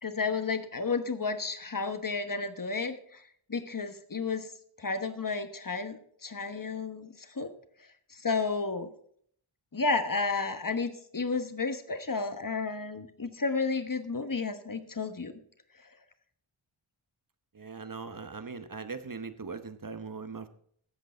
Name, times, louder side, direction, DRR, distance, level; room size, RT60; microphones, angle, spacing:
voice 1, 0.0-3.2 3.5-4.5 4.8-7.5 8.1-8.9 9.7-15.3, left 4 dB, 40° left, 9 dB, 1.2 m, -32 dB
voice 2, 17.5-20.5, right 4 dB, 40° right, 10 dB, 1.1 m, -40 dB
13.0 x 8.1 x 4.4 m, 0.62 s
wide cardioid pair, 70°, 49 cm